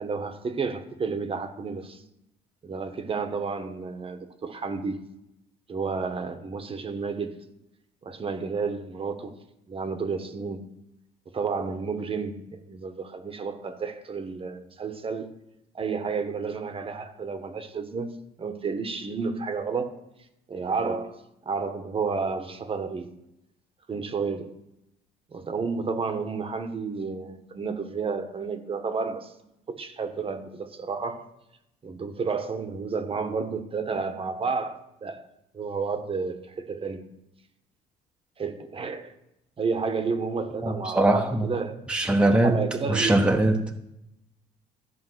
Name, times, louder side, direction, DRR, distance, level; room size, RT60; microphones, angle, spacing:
voice 1, 0.0-2.0 2.6-5.0 5.7-7.4 8.0-9.3 9.7-10.7 11.3-15.3 15.7-19.9 20.5-23.1 23.9-24.6 25.3-29.3 29.7-31.2 31.8-35.2 35.5-37.0 38.4-39.1 39.6-41.8 42.4-43.2, right 5 dB, 35° right, 1.3 m, -31 dB
voice 2, 40.6-41.5 41.9-43.6, right 2 dB, 5° right, 1.1 m, -22 dB
14.0 x 5.2 x 8.1 m
cardioid pair, 110°, 17 cm